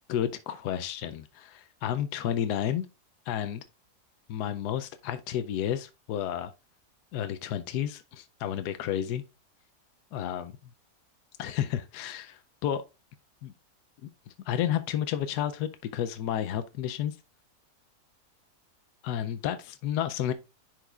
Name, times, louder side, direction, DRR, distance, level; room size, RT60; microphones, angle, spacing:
voice 1, 0.1-2.9 3.3-3.6 4.3-6.5 7.1-9.2 10.1-10.5 11.4-12.8 13.4-13.5 14.0-17.2 19.0-20.3, left 10 dB, 90° left, 1.2 m, -31 dB
10.0 x 4.7 x 2.4 m
omnidirectional pair, 1.7 m